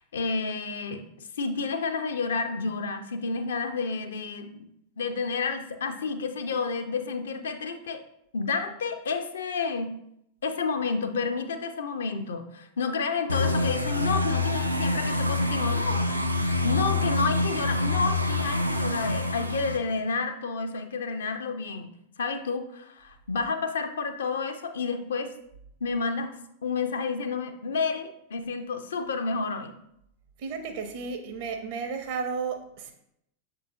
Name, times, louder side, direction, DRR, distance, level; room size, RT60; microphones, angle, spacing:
voice 1, 0.0-4.5 5.0-8.0 8.3-9.9 10.4-16.1 16.4-21.9 22.2-25.3 25.8-29.7, left 4 dB, 65° left, 6 dB, 0.4 m, -30 dB
sound 1, 13.3-19.8, left 2 dB, 90° right, 0.3 m, -26 dB
voice 2, 30.4-32.9, right 5 dB, 50° right, 5 dB, 0.6 m, -33 dB
6.4 x 2.7 x 2.6 m, 0.75 s
figure-of-eight pair, 90°, 0 cm